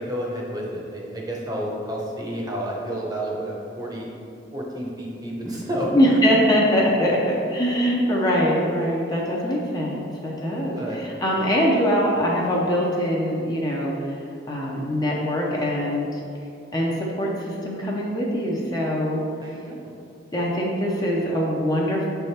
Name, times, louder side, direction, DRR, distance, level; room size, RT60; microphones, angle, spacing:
voice 1, 0.0-4.1 4.5-6.2 10.8-11.0 19.4-20.0, equal, 20° right, -3 dB, 0.8 m, -30 dB
voice 2, 5.9-14.2 14.5-16.2 16.7-19.2 20.3-22.1, equal, 20° left, -3 dB, 0.6 m, -23 dB
6.6 x 3.4 x 4.2 m, 2.6 s
head